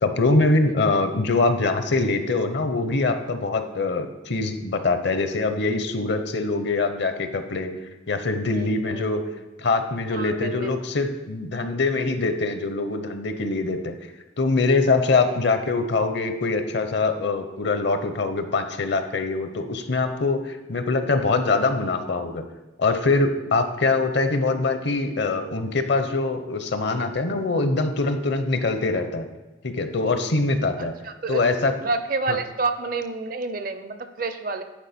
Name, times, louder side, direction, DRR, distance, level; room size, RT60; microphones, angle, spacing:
voice 1, 0.0-7.7 8.1-9.2 9.6-13.9 14.4-22.4 22.8-29.3 29.6-30.9 31.3-31.7 32.3-32.4, left 3 dB, 55° left, 8 dB, 0.7 m, -23 dB
voice 2, 8.5-9.1 10.1-10.7 12.0-12.1 15.2-15.4 21.0-21.3 30.8-31.4 31.8-34.6, right 3 dB, 45° right, 9 dB, 0.5 m, -29 dB
10.5 x 4.7 x 4.2 m, 1.1 s
head